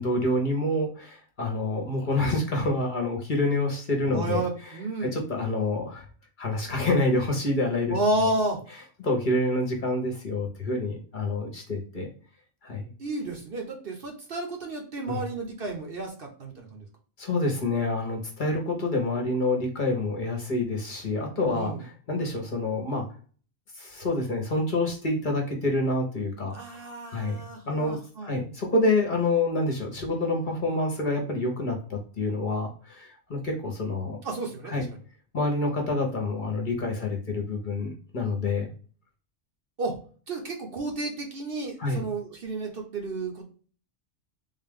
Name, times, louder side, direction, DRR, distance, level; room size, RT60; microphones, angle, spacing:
voice 1, 0.0-6.1 6.4-8.3 9.0-12.1 12.6-12.9 15.1-15.2 17.2-23.1 23.7-26.5 27.1-34.2 34.7-34.9 35.3-38.7 41.8-42.1, left 2 dB, 45° left, 1 dB, 0.9 m, -27 dB
voice 2, 4.1-5.2 7.9-8.6 13.0-16.8 21.4-21.8 26.5-28.3 34.2-34.9 39.8-39.9 40.3-43.4, right 2 dB, 50° right, 2 dB, 0.9 m, -31 dB
3.7 x 2.4 x 3.5 m, 0.40 s
omnidirectional pair, 1.3 m